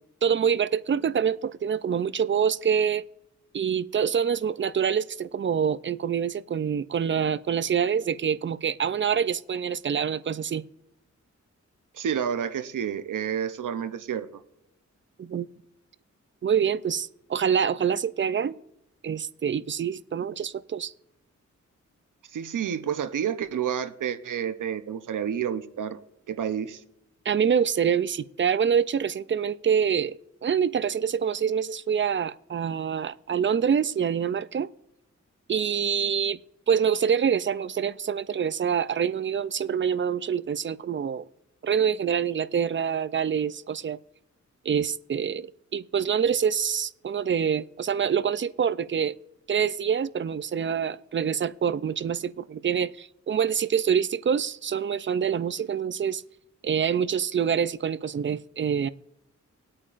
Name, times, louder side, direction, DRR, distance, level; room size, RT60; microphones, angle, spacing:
voice 1, 0.2-3.0 3.5-10.6 15.2-15.5 16.4-18.6 19.0-20.9 27.3-34.7 35.5-36.4 36.7-41.2 41.6-44.0 44.7-49.1 49.5-56.2 56.6-58.9, right 7 dB, 40° right, 0.4 m, -26 dB
voice 2, 11.9-14.3 22.3-26.0 26.3-26.8, right 8 dB, 90° right, 0.7 m, -29 dB
20.5 x 8.6 x 2.5 m
wide cardioid pair, 100°, 30 cm